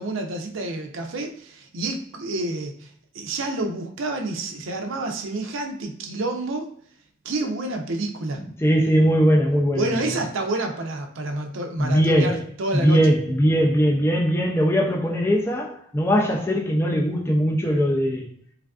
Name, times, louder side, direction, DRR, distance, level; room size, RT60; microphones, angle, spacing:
voice 1, 0.0-2.9 3.1-6.7 7.2-8.4 9.8-13.1, right 2 dB, 80° right, 0.5 m, -28 dB
voice 2, 8.6-10.0 11.8-12.4 12.7-18.3, equal, 10° left, 0.3 m, -20 dB
3.2 x 2.4 x 2.3 m
head